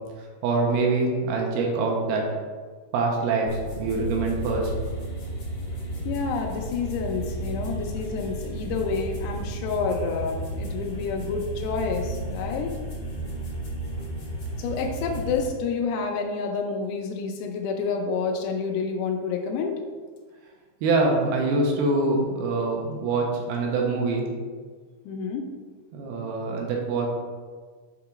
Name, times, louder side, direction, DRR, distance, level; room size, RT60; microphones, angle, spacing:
voice 1, 0.4-2.3 2.9-3.5 3.8-4.7 20.8-24.3 25.9-27.1, right 3 dB, 85° right, 0 dB, 2.7 m, -24 dB
sound 1, 3.4-15.5, right 1 dB, 75° left, 1.0 m, -33 dB
voice 2, 6.1-12.7 14.6-19.8 25.1-25.5, left 5 dB, 90° left, 1 dB, 2.6 m, -29 dB
6.9 x 2.9 x 4.8 m, 1.5 s
omnidirectional pair, 4.5 m